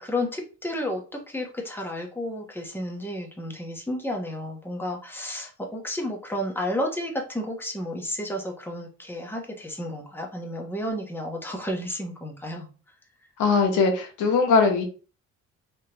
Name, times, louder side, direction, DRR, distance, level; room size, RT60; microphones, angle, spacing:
voice 1, 0.0-12.7, left 1 dB, 5° left, 1 dB, 1.1 m, -32 dB
voice 2, 13.4-14.8, left 4 dB, 85° left, 4 dB, 1.1 m, -20 dB
3.6 x 3.1 x 2.9 m, 0.37 s
cardioid pair, 90°, 30 cm